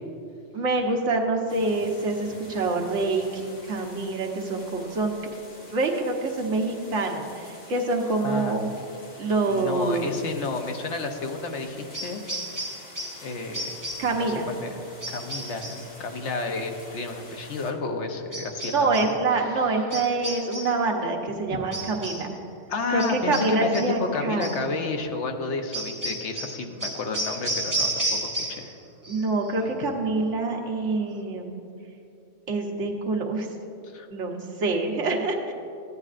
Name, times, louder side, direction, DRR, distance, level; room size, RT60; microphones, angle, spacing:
voice 1, 0.5-5.1 5.7-8.7 9.2-10.1 14.0-14.5 18.7-22.3 22.9-24.5 29.1-31.5 32.5-33.5 34.1-35.5, right 3 dB, 85° right, 1 dB, 1.3 m, -26 dB
sound 1, 1.5-17.7, left 1 dB, 50° left, 1.7 m, -47 dB
voice 2, 8.2-8.6 9.5-12.2 13.2-13.8 14.1-14.8 15.1-19.1 19.5-19.8 21.5-21.6 22.7-28.8 29.6-29.7 33.8-34.1, left 3 dB, 75° left, 4 dB, 1.1 m, -31 dB
sound 2, 11.9-13.3 13.5-14.2 15.0-15.9 18.3-19.2 19.9-20.8 21.7-22.3 23.0-24.0 24.4-24.7 25.7-28.8 29.0-29.5, right 1 dB, 15° right, 1.2 m, -32 dB
14.5 x 9.6 x 2.5 m, 2.7 s
omnidirectional pair, 1.2 m